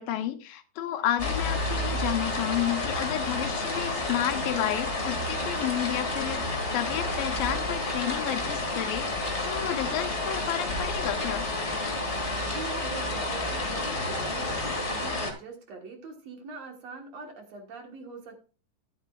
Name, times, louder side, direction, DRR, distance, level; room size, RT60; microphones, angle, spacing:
voice 1, 0.0-11.5, left 12 dB, 80° left, 9 dB, 2.6 m, -31 dB
sound 1, 1.2-15.3, left 2 dB, 25° left, 1.6 m, -30 dB
voice 2, 12.4-18.4, right 4 dB, 55° right, 3 dB, 2.3 m, -43 dB
12.5 x 11.0 x 2.4 m, 0.36 s
omnidirectional pair, 4.0 m